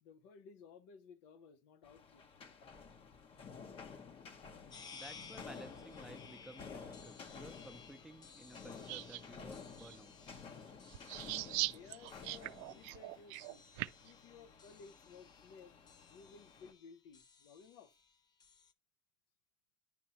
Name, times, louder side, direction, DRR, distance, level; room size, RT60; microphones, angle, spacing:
voice 1, 0.0-2.2 11.5-13.6 14.0-17.9, left 5 dB, 85° left, 0.6 m, -58 dB
sound 1, 1.8-16.7, left 5 dB, 55° left, 1.0 m, -53 dB
sound 2, 4.7-18.7, left 6 dB, 40° left, 0.6 m, -59 dB
voice 2, 4.9-10.1, right 1 dB, 5° right, 0.6 m, -55 dB
sound 3, 8.9-9.2 9.8-10.0 10.9-14.1, right 18 dB, 80° right, 0.4 m, -40 dB
9.9 x 5.5 x 2.9 m
supercardioid pair, 80°, 11 cm